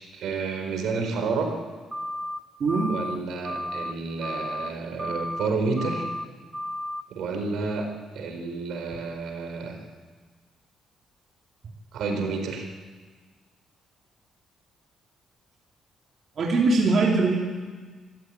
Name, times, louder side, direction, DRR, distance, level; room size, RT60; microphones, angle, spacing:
voice 1, 0.1-1.5 2.9-6.1 7.1-7.9 8.1-9.8 11.9-12.7, right 4 dB, 75° right, 4 dB, 4.5 m, -30 dB
sound 1, 1.9-2.4 2.7-3.2 3.4-3.9 4.2-4.7 5.0-5.5 5.8-6.2 6.5-7.0, left 1 dB, 10° right, 1.6 m, -33 dB
voice 2, 2.6-2.9 16.4-17.4, right 3 dB, 50° right, -1 dB, 3.2 m, -21 dB
25.0 x 15.0 x 9.1 m, 1.5 s
cardioid pair, 90°, 0 cm